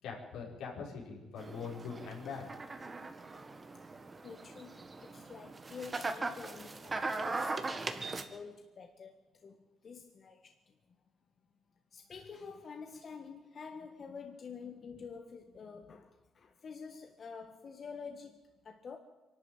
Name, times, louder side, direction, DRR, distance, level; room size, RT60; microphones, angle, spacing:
voice 1, 0.0-2.5, left 5 dB, 85° left, -2 dB, 5.2 m, -42 dB
sound 1, 1.4-8.2, right 3 dB, 30° right, 1.8 m, -40 dB
voice 2, 4.2-10.7 11.9-19.0, left 5 dB, 50° left, 5 dB, 1.6 m, -48 dB
24.0 x 12.0 x 9.1 m, 1.2 s
cardioid pair, 90°, 0 cm